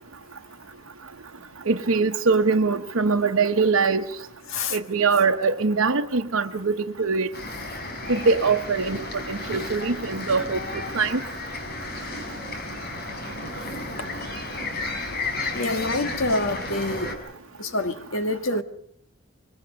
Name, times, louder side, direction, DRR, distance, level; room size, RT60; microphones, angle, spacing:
voice 1, 1.7-4.0 4.7-6.7 7.0-7.3 8.1-10.6 10.9-11.2, right 4 dB, 85° right, 1.0 m, -22 dB
sound 1, 7.3-17.2, left 2 dB, 50° left, 5.5 m, -33 dB
voice 2, 15.5-17.2 17.6-18.6, left 2 dB, 75° left, 1.8 m, -26 dB
26.5 x 23.0 x 5.3 m
head